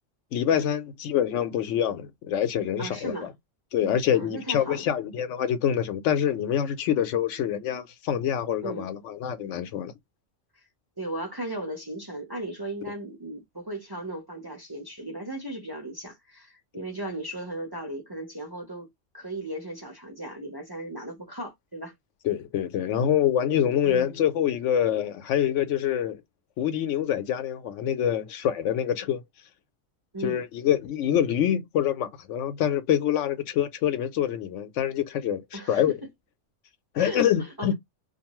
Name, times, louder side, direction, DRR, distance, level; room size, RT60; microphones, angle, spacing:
voice 1, 0.3-3.3 3.7-9.9 22.2-26.2 26.6-29.2 30.2-36.0 36.9-37.7, left 10 dB, 75° left, 0.9 m, -26 dB
voice 2, 2.8-3.3 4.1-4.8 8.6-8.9 11.0-21.9 23.8-24.2 30.1-30.4 35.5-35.8 37.0-37.7, right 1 dB, 25° right, 0.6 m, -37 dB
2.6 x 2.3 x 2.9 m
omnidirectional pair, 1.3 m